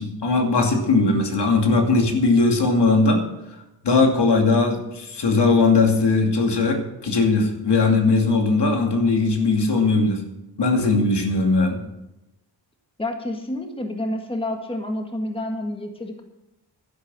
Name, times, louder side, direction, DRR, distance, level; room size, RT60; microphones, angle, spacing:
voice 1, 0.0-3.2 3.8-10.2 10.6-11.8, left 3 dB, 75° left, 3 dB, 2.5 m, -19 dB
voice 2, 13.0-16.2, left 1 dB, 15° left, 3 dB, 1.7 m, -29 dB
12.0 x 11.0 x 6.2 m, 0.93 s
wide cardioid pair, 145°, 41 cm